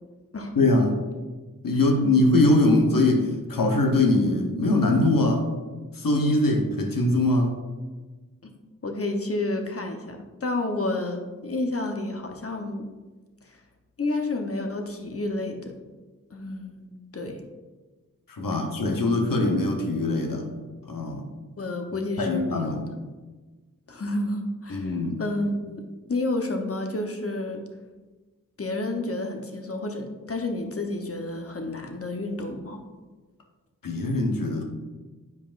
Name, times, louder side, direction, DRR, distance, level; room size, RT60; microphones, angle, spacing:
voice 1, 0.6-1.0 1.6-5.4 6.0-7.5 18.3-20.5 20.9-21.2 22.2-22.8 24.7-25.2 33.8-34.6, left 2 dB, 85° left, 3 dB, 0.9 m, -22 dB
voice 2, 8.8-12.9 14.0-15.8 16.3-17.4 21.6-22.8 23.9-27.6 28.6-32.8, left 2 dB, 45° left, 4 dB, 0.9 m, -30 dB
8.1 x 4.9 x 2.5 m, 1.3 s
cardioid pair, 45°, 33 cm